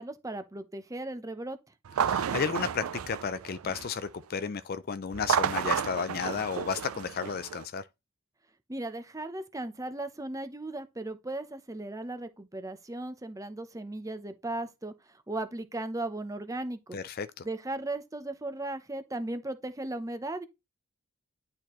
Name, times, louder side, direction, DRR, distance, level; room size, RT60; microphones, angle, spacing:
voice 1, 0.0-1.6 8.7-17.0 17.4-20.5, right 2 dB, 15° right, 0.7 m, -37 dB
sound 1, 1.9-4.1 5.1-7.6, right 8 dB, 70° right, 0.4 m, -31 dB
voice 2, 2.0-7.8 16.9-17.5, left 6 dB, 40° left, 0.4 m, -33 dB
10.5 x 4.2 x 3.0 m
head